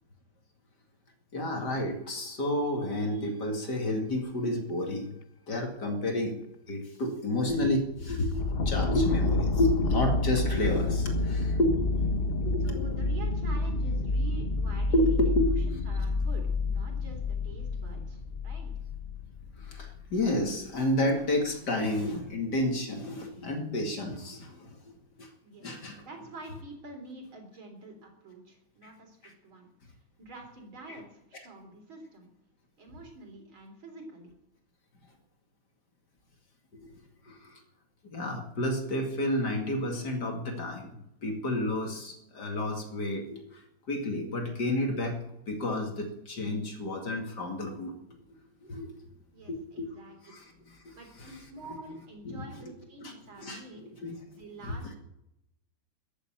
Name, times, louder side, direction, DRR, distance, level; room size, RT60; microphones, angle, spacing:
voice 1, 1.3-5.1 5.5-6.4 6.7-11.8 12.4-12.8 14.9-15.5 19.6-24.8 25.2-25.3 25.6-26.0 30.9-31.0 36.8-36.9 37.3-37.6 38.0-43.6 43.9-45.2 45.5-48.0 48.6-48.9 49.5-49.9 50.2-50.5 50.8-51.3 52.2-52.4 53.0-53.1 53.4-54.2 54.6-54.7, left 1 dB, 50° left, 3 dB, 2.8 m, -30 dB
sound 1, 8.0-20.4 21.0-21.1, left 3 dB, 85° left, 0.5 m, -29 dB
voice 2, 12.6-18.7 25.4-29.7 30.2-32.3 32.8-34.3 49.3-50.2 50.9-53.8 54.3-55.0, right 2 dB, 70° right, 3 dB, 4.4 m, -47 dB
14.5 x 8.4 x 8.9 m, 0.83 s
omnidirectional pair, 2.3 m